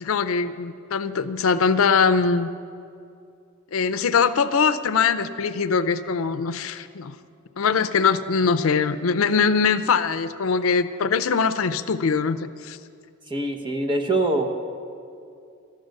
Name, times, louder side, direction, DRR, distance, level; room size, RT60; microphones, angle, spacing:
voice 1, 0.0-2.5 3.7-7.2 7.6-12.8, left 5 dB, 80° left, 11 dB, 0.5 m, -22 dB
voice 2, 13.3-14.5, right 2 dB, 25° right, 4 dB, 1.0 m, -24 dB
12.5 x 9.3 x 6.5 m, 2.5 s
head